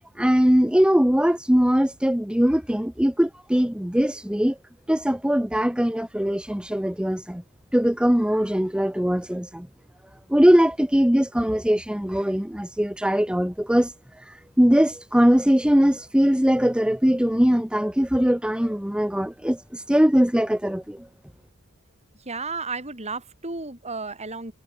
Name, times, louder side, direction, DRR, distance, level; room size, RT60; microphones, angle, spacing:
voice 1, 0.2-4.6 4.9-7.4 7.7-9.7 10.3-21.1, equal, 5° right, 0.9 m, -21 dB
voice 2, 22.3-24.5, right 4 dB, 30° right, 5.4 m, -33 dB
head